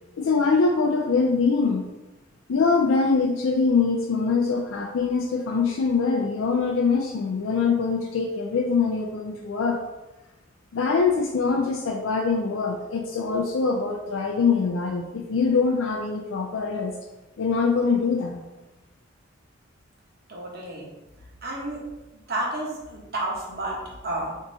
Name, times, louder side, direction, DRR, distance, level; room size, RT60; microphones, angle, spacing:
voice 1, 0.2-1.8 2.5-9.8 10.7-16.9 17.4-18.4, left 4 dB, 90° left, 0 dB, 0.4 m, -23 dB
voice 2, 20.3-20.9 21.4-21.9 22.3-24.4, right 1 dB, 55° right, -2 dB, 1.0 m, -31 dB
3.6 x 2.7 x 3.9 m, 1.0 s
head